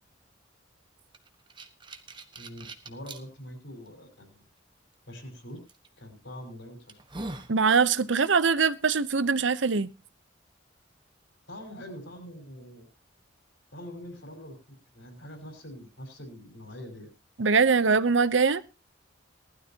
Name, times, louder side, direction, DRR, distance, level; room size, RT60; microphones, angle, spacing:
sound 1, 1.1-3.2 3.9-4.0 5.7-5.9 6.4-6.5 6.9-7.5, right 2 dB, 25° right, 1.2 m, -41 dB
voice 1, 2.4-4.4 5.1-5.6 6.0-7.0 11.5-12.9 13.7-17.1, equal, 70° left, 5.2 m, -44 dB
voice 2, 7.5-9.9 17.4-18.6, right 5 dB, 70° right, 0.8 m, -22 dB
19.5 x 12.5 x 2.9 m
head